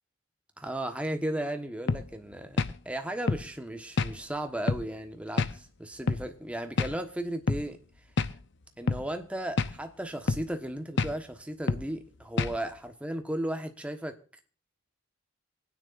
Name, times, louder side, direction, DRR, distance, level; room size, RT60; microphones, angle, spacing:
voice 1, 0.6-7.8 8.8-14.2, right 1 dB, 5° right, 6 dB, 1.2 m, -35 dB
sound 1, 1.9-2.1 2.6-2.8 3.3-3.5 4.0-4.1 4.7-4.9 5.4-5.5 6.1-6.3 6.8-7.0 7.5-7.6 8.2-8.3 8.9-9.0 9.6-9.8 10.3-10.5 11.0-11.1 11.7-11.9 12.4-12.6, left 3 dB, 55° left, 0.7 m, -27 dB
26.0 x 9.7 x 2.5 m, 0.40 s
head